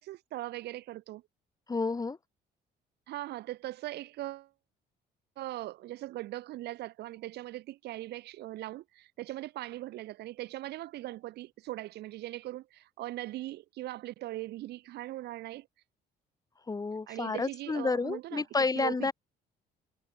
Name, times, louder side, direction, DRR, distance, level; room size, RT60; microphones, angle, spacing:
voice 1, 0.0-1.2 3.1-4.5 5.4-15.7 17.1-18.4 18.7-19.1, right 16 dB, 75° right, 6.4 m, -40 dB
voice 2, 1.7-2.2 16.7-19.1, left 4 dB, 20° left, 6.5 m, -30 dB
cardioid pair, 110°, 17 cm